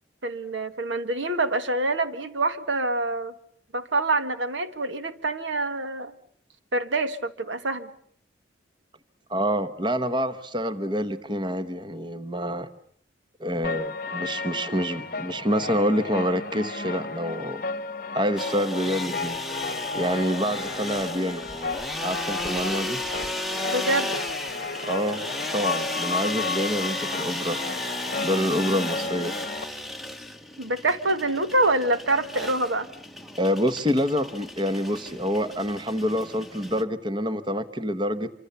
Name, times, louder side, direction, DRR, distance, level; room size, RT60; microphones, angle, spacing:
voice 1, 0.2-3.3 3.7-6.1 6.7-7.9 23.7-24.1 30.6-32.9, right 2 dB, 85° right, 10 dB, 1.7 m, -26 dB
voice 2, 9.3-12.7 13.4-17.6 18.1-19.4 19.9-21.4 22.0-23.0 24.8-25.2 25.5-27.6 28.2-29.3 33.4-38.3, equal, 25° right, 12 dB, 1.0 m, -27 dB
sound 1, 13.6-29.6, left 3 dB, 45° left, 1.0 m, -33 dB
sound 2, 18.4-36.8, left 1 dB, ahead, 1.1 m, -34 dB
26.0 x 25.5 x 6.9 m, 0.62 s
head